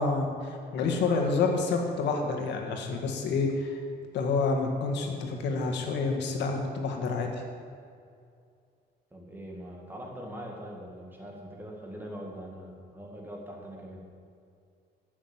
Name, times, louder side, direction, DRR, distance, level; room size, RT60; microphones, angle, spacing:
voice 1, 0.0-3.8 4.1-7.3, left 4 dB, 80° left, 3 dB, 1.8 m, -28 dB
voice 2, 9.1-14.1, equal, 10° right, -1 dB, 1.9 m, -42 dB
12.5 x 6.3 x 8.8 m, 2.3 s
cardioid pair, 170°, 18 cm